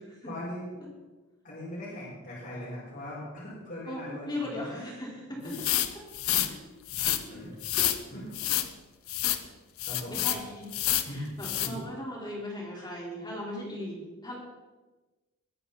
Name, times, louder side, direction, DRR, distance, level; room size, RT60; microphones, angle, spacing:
voice 1, 0.2-0.7 1.4-4.9 5.4-5.6 6.3-6.5 7.3-7.5 8.1-8.3 9.9-10.3 11.1-11.8, left 1 dB, 50° left, -9 dB, 5.7 m, -40 dB
voice 2, 3.9-5.5 7.1-7.2 7.8-7.9 10.1-10.7 11.0-14.4, left 1 dB, 20° left, -4 dB, 4.4 m, -38 dB
sound 1, 5.5-6.5 6.9-7.2 7.6-8.0 8.3-8.7 9.1-9.4 9.8-10.4 10.7-11.1 11.4-11.7, left 13 dB, 85° left, 0.9 m, -28 dB
22.0 x 9.7 x 4.3 m, 1.2 s
head